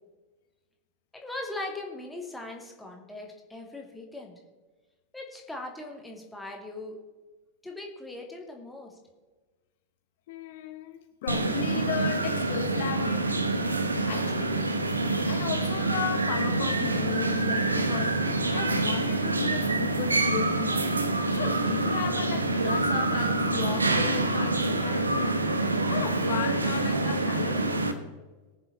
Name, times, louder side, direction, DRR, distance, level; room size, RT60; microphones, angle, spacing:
voice 1, 1.1-4.3 5.1-7.0 7.6-8.9, left 2 dB, 5° left, 0 dB, 2.5 m, -39 dB
voice 2, 10.3-13.5 14.1-14.6 15.2-18.2 18.5-20.8 21.3-25.4 25.9-27.7, left 10 dB, 55° left, 6 dB, 0.9 m, -35 dB
sound 1, 11.3-27.9, right 2 dB, 80° right, 1.0 m, -26 dB
21.0 x 7.3 x 4.1 m, 1.3 s
figure-of-eight pair, 90°, 0 cm